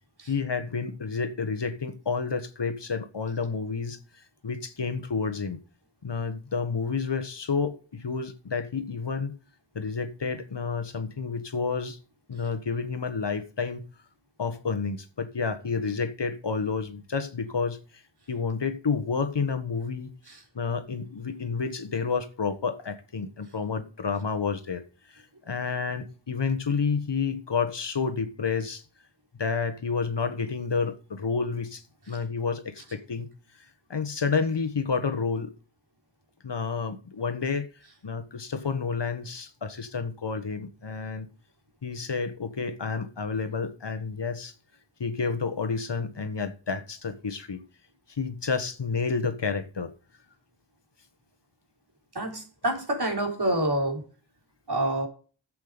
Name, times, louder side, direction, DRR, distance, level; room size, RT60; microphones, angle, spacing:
voice 1, 0.3-5.6 6.0-9.4 9.7-12.0 12.3-13.9 14.4-17.8 18.3-20.1 20.5-24.8 25.1-28.8 29.4-33.3 33.9-35.5 36.4-37.7 38.0-41.3 41.8-44.5 45.0-47.6 48.1-49.9, left 5 dB, 60° left, 1.4 m, -30 dB
voice 2, 52.1-54.0 54.7-55.1, right 1 dB, 55° right, 3.8 m, -27 dB
11.5 x 7.8 x 5.1 m
wide cardioid pair, 60°, 46 cm